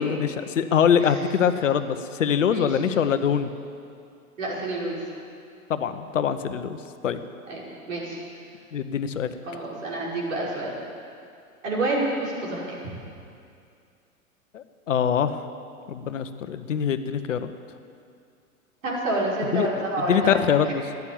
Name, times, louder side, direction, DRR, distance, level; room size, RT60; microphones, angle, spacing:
voice 1, 0.0-3.5 5.7-6.8 7.0-7.2 8.7-9.3 14.5-15.4 15.9-17.5 19.5-20.8, left 8 dB, 60° left, 10 dB, 1.0 m, -24 dB
voice 2, 4.4-5.0 7.5-7.6 7.9-8.2 9.5-10.7 11.6-12.6 18.8-20.4, right 2 dB, 65° right, -5 dB, 5.6 m, -28 dB
15.5 x 11.0 x 8.6 m, 2.4 s
figure-of-eight pair, 100°, 42 cm